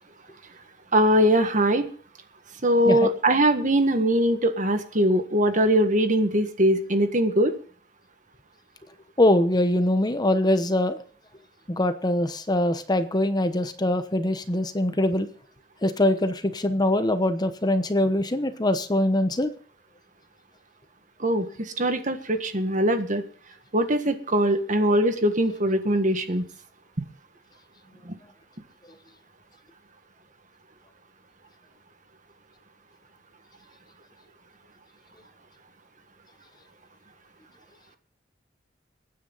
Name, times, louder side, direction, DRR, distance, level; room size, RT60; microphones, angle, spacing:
voice 1, 0.9-1.9 2.6-7.5 21.2-21.4 21.8-23.2 23.7-26.4 28.1-28.2, right 1 dB, 45° right, 8 dB, 1.6 m, -21 dB
voice 2, 9.2-11.0 11.7-15.3 15.8-19.5, left 1 dB, 25° left, 10 dB, 1.0 m, -23 dB
23.0 x 9.6 x 4.0 m, 0.43 s
head